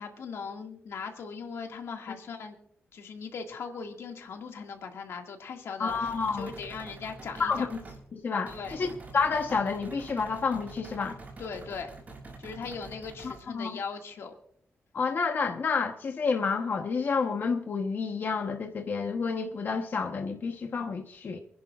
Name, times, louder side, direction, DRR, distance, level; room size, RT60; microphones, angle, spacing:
voice 1, 0.0-2.6 2.9-7.7 8.5-8.8 11.4-11.9 12.4-14.3, left 5 dB, 85° left, 2.0 m, -39 dB
voice 2, 5.8-6.5 7.4-7.8 8.1-8.9 9.1-11.2 13.2-13.8 14.9-21.4, left 5 dB, 50° left, 1.0 m, -29 dB
sound 1, 5.9-8.0 8.5-13.4, right 3 dB, 35° right, 6.2 m, -46 dB
28.5 x 10.5 x 2.4 m
wide cardioid pair, 135°, 4 cm